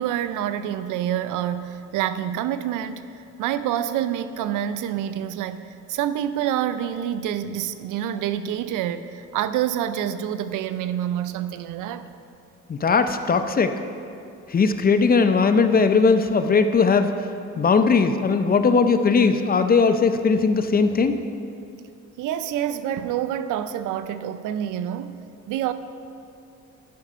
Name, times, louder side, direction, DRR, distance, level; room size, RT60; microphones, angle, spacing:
voice 1, 0.0-3.0 3.4-5.6 5.9-12.1 22.2-25.2 25.5-25.7, right 10 dB, 85° right, 0.5 m, -27 dB
voice 2, 12.7-13.8 14.5-17.1 17.6-21.2, left 4 dB, 30° left, 0.5 m, -19 dB
11.0 x 5.4 x 5.0 m
cardioid pair, 90°, 30 cm